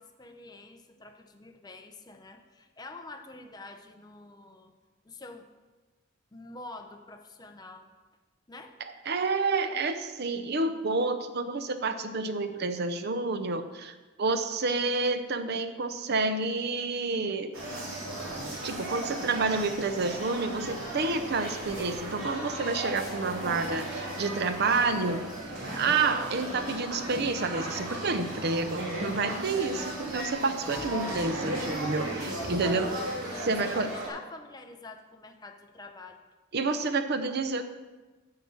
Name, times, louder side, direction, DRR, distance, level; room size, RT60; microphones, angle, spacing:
voice 1, 0.0-4.7 5.0-5.5 6.3-7.9 8.5-8.8 32.4-36.2, left 2 dB, 20° left, 4 dB, 0.7 m, -46 dB
voice 2, 9.1-17.5 18.6-25.2 25.7-32.9 33.4-33.9 36.5-37.6, right 3 dB, 50° right, 9 dB, 0.6 m, -29 dB
sound 1, 17.5-34.1, right 1 dB, 80° right, 2.6 m, -36 dB
8.1 x 4.9 x 7.1 m, 1.2 s
head